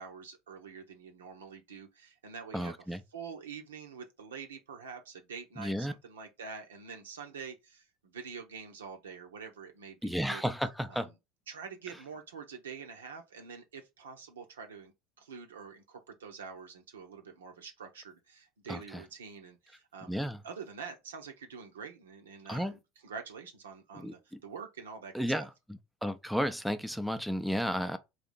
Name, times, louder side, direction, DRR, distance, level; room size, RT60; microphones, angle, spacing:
voice 1, 0.0-10.4 10.9-11.1 11.5-14.9 15.2-20.2 20.4-25.1 25.4-25.5, right 6 dB, 80° right, 0.8 m, -46 dB
voice 2, 2.5-3.0 5.6-5.9 10.0-11.1 18.7-18.8 20.1-20.4 22.5-22.7 24.0-24.1 25.1-25.5 26.0-28.0, equal, ahead, 0.5 m, -32 dB
3.3 x 2.8 x 4.0 m
figure-of-eight pair, 75°, 0 cm